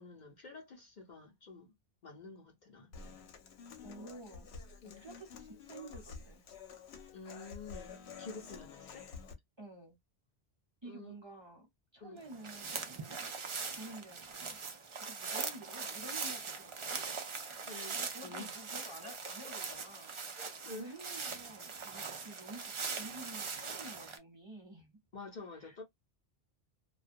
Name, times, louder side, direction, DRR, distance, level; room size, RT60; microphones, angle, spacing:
voice 1, 0.0-1.7 2.0-3.3 3.8-4.1 4.8-5.0 7.1-9.1 10.8-11.2 12.0-12.2 17.6-18.0 18.2-18.6 19.0-19.1 19.4-19.5 20.4-20.9 25.1-25.8, left 3 dB, 50° left, 0.7 m, -49 dB
Human voice / Acoustic guitar, 2.9-9.3, left 5 dB, 80° left, 0.9 m, -50 dB
voice 2, 3.8-6.4 9.6-9.9 10.8-11.7 11.9-13.3 13.7-14.6 14.9-17.2 17.7-20.4 20.7-22.6 22.9-25.0 25.6-25.8, right 1 dB, 25° right, 0.9 m, -51 dB
sound 1, 12.2-24.2, right 5 dB, 55° right, 0.3 m, -41 dB
2.2 x 2.2 x 2.5 m
omnidirectional pair, 1.1 m